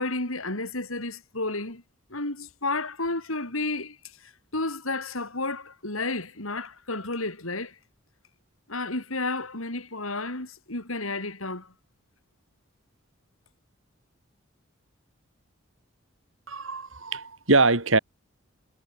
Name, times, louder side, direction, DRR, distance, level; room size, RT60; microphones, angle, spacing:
voice 1, 0.0-1.8 2.1-4.0 4.2-7.8 8.7-11.7, left 2 dB, 85° left, 6.5 m, -31 dB
voice 2, 16.5-18.0, right 3 dB, 70° right, 3.8 m, -23 dB
head